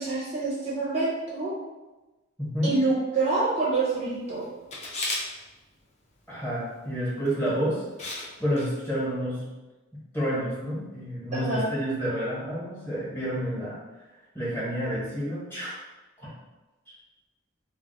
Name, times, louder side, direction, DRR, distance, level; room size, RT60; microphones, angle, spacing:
voice 1, 0.0-1.5 2.6-4.4 11.3-11.7, right 3 dB, 30° right, -7 dB, 0.5 m, -26 dB
voice 2, 2.4-2.8 6.3-7.8 8.4-9.5 10.1-13.8 14.3-15.8 16.2-16.3, equal, 10° left, -8 dB, 1.0 m, -29 dB
Camera, 4.7-5.2 7.3-7.5 8.0-8.3 8.6-8.7, left 2 dB, 30° left, 0.5 m, -32 dB
2.3 x 2.0 x 3.8 m, 1.1 s
head